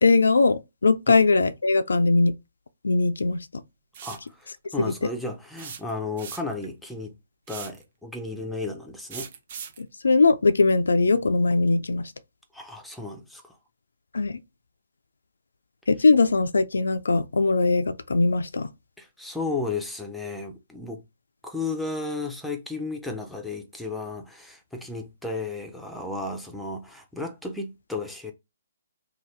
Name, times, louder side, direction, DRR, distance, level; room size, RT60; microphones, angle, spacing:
voice 1, 0.0-2.3 2.8-3.6 4.8-4.9 9.8-12.1 14.1-14.4 15.9-18.7, left 3 dB, 75° left, 0.3 m, -21 dB
sound 1, 3.9-4.3 5.6-6.7 7.5-7.8 9.1-9.8, right 7 dB, 45° right, 0.7 m, -39 dB
voice 2, 4.0-7.2 7.5-9.3 12.5-13.6 19.0-21.0 21.4-28.3, left 3 dB, ahead, 0.6 m, -34 dB
2.8 x 2.3 x 3.2 m
figure-of-eight pair, 140°, 0 cm